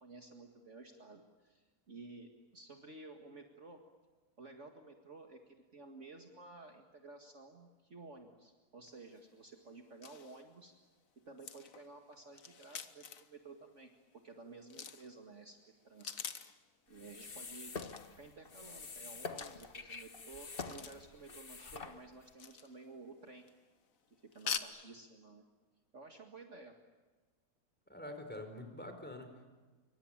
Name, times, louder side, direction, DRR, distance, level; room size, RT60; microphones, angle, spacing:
voice 1, 0.0-3.8 4.4-10.7 11.3-15.6 15.8-16.2 16.9-17.7 18.2-23.4 24.1-25.4 25.9-26.7, right 3 dB, 50° right, 3 dB, 2.3 m, -53 dB
sound 1, 8.9-9.0 9.1-9.2 9.7-9.8 10.0-10.5 11.4-13.4 14.6-15.2 15.8-16.6 17.7-18.2 19.3-20.0 20.6-21.1 22.3-23.0 23.3-23.6 24.3-24.6, left 7 dB, 55° left, 1.6 m, -45 dB
sound 2, 16.9-22.3, left 4 dB, 35° left, 1.5 m, -47 dB
voice 2, 27.9-29.4, left 1 dB, 5° left, 6 dB, 4.4 m, -46 dB
26.5 x 24.5 x 9.0 m, 1.3 s
omnidirectional pair, 1.7 m